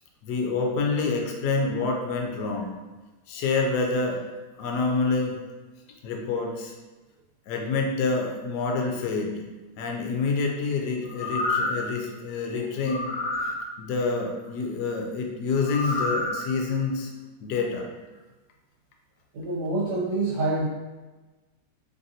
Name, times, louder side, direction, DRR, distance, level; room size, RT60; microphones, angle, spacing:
voice 1, 0.2-2.7 3.3-4.2 4.6-5.3 6.0-6.7 7.5-9.4 9.8-13.1 13.8-17.1 17.4-17.9, left 4 dB, 75° left, 1 dB, 1.1 m, -27 dB
sound 1, 11.0-11.8 12.9-13.5 15.6-16.3 16.8-16.9, left 2 dB, 55° left, 1.1 m, -28 dB
voice 2, 19.3-20.7, right 2 dB, 75° right, -8 dB, 1.5 m, -26 dB
3.3 x 2.5 x 2.7 m, 1.2 s
omnidirectional pair, 1.9 m